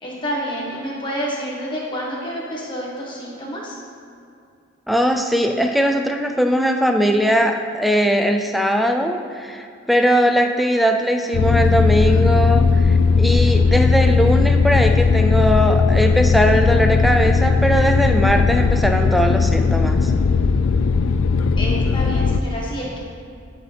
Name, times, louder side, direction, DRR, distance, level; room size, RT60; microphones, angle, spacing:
voice 1, 0.0-3.8 21.6-23.0, equal, 25° left, -4 dB, 1.4 m, -28 dB
voice 2, 4.9-20.1, equal, ahead, 4 dB, 0.3 m, -19 dB
sound 1, 11.3-22.4, left 4 dB, 75° left, 0.3 m, -17 dB
11.5 x 4.9 x 3.3 m, 2.4 s
head